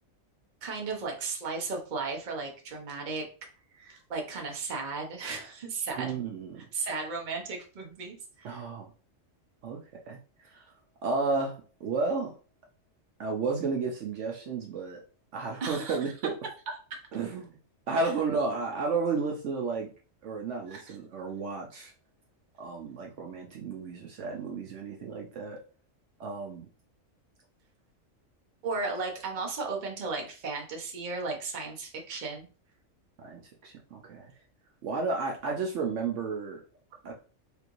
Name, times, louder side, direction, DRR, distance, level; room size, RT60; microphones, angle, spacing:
voice 1, 0.6-3.3 3.7-6.2 6.7-8.6 15.6-16.1 16.9-17.0 20.7-21.0 28.6-32.5, right 4 dB, 40° right, 1 dB, 0.8 m, -35 dB
voice 2, 5.9-6.7 8.4-8.9 9.6-9.8 10.1-10.2 10.5-10.6 11.0-11.6 11.8-12.3 13.2-15.0 15.3-16.3 17.1-17.5 17.9-19.9 20.2-21.9 22.6-25.6 26.2-26.7 33.2-34.3 34.8-36.6 37.0-37.1, right 4 dB, 65° right, 1 dB, 0.9 m, -32 dB
3.4 x 3.1 x 2.5 m, 0.36 s
omnidirectional pair, 1.4 m